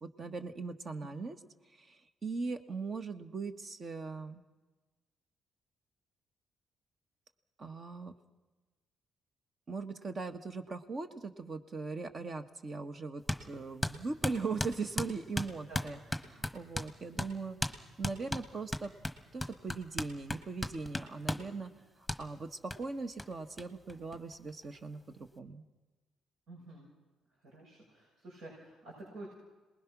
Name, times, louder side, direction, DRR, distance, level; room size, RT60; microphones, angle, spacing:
voice 1, 0.0-1.4 1.7-4.4 7.6-8.1 9.7-16.0 16.3-17.6 18.0-18.9 19.3-21.7 22.2-25.6, right 4 dB, 40° right, 8 dB, 1.4 m, -40 dB
sound 1, 13.3-13.4 13.8-16.9 17.2-17.3 17.6-17.8 18.0-21.5 22.1-22.2 22.7-22.8 23.2-23.3 23.6-23.7 23.9-24.6, left 1 dB, 5° left, 1.4 m, -36 dB
voice 2, 26.5-26.9 27.4-29.3, right 2 dB, 75° right, -4 dB, 6.5 m, -49 dB
27.0 x 20.0 x 6.1 m, 1.2 s
cardioid pair, 105°, 0 cm